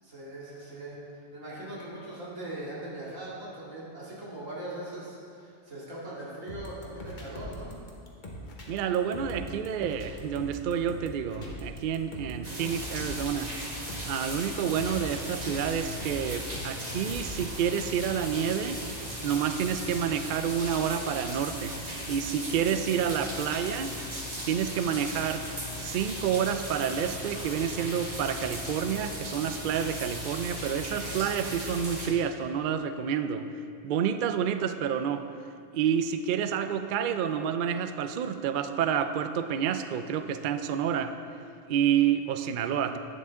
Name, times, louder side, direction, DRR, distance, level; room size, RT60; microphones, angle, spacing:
voice 1, 0.0-7.8, right 1 dB, 85° right, -7 dB, 2.8 m, -40 dB
sound 1, 6.5-17.6, left 1 dB, 40° left, 1.2 m, -41 dB
voice 2, 8.7-13.5 14.0-18.8 19.2-21.8 22.1-23.9 24.5-25.4 25.8-33.5 33.8-35.3 35.7-41.1 41.7-43.0, right 8 dB, 65° right, 9 dB, 0.5 m, -29 dB
sound 2, 12.4-32.1, equal, 30° right, 1.7 m, -37 dB
11.0 x 8.5 x 3.6 m, 2.4 s
omnidirectional pair, 1.3 m